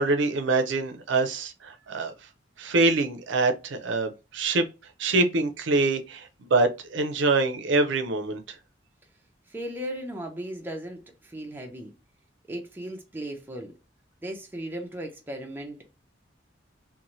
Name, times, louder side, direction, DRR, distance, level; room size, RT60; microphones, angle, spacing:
voice 1, 0.0-2.1 2.6-4.6 5.0-8.4, right 3 dB, 70° right, 0.5 m, -25 dB
voice 2, 9.5-11.9 12.5-13.7 14.2-15.8, right 1 dB, 10° right, 0.5 m, -36 dB
2.7 x 2.1 x 3.0 m
head